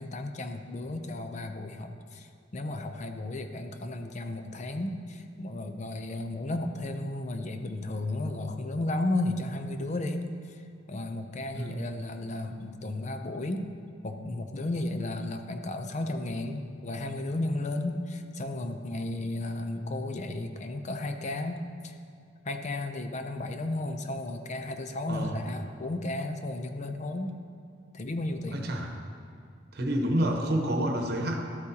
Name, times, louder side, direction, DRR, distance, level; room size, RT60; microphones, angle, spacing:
voice 1, 0.0-2.3 2.5-10.6 10.9-13.7 14.0-22.0 22.4-27.4 27.9-28.7, left 2 dB, 40° left, 7 dB, 0.5 m, -34 dB
voice 2, 28.5-28.9 29.7-31.4, right 1 dB, 60° right, 2 dB, 1.1 m, -28 dB
12.0 x 8.2 x 2.8 m, 2.4 s
head